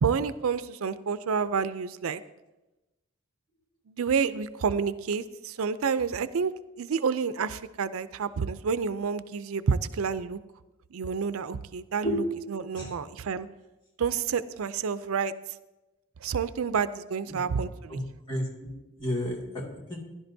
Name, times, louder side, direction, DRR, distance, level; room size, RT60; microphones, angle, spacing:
voice 1, 0.0-2.2 3.9-10.4 10.9-12.2 12.5-13.5 14.0-15.3 16.2-18.0, right 6 dB, 90° right, 14 dB, 0.5 m, -29 dB
voice 2, 17.3-17.6 17.9-18.0 18.3-18.7 19.0-20.0, equal, 20° left, -3 dB, 2.3 m, -32 dB
15.5 x 11.0 x 2.7 m, 1.0 s
head